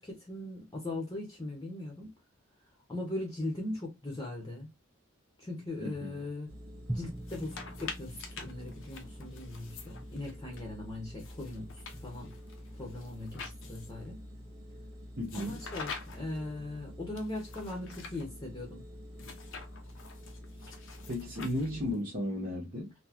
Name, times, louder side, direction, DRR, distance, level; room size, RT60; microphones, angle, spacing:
voice 1, 0.0-2.1 2.9-4.7 5.4-6.5 6.9-12.3 12.8-14.2 15.3-18.8, left 2 dB, 20° left, 0.9 m, -39 dB
voice 2, 5.8-6.2 15.2-15.6 21.1-22.9, left 1 dB, 45° right, 1.1 m, -35 dB
sound 1, 6.5-21.9, equal, 75° right, 1.2 m, -48 dB
Drum, 6.9-9.8, right 1 dB, 5° right, 0.3 m, -43 dB
sound 2, 7.2-10.6 11.2-14.1 15.2-16.4 17.2-18.2 19.2-22.0, left 5 dB, 65° left, 0.7 m, -47 dB
4.0 x 2.2 x 2.8 m
head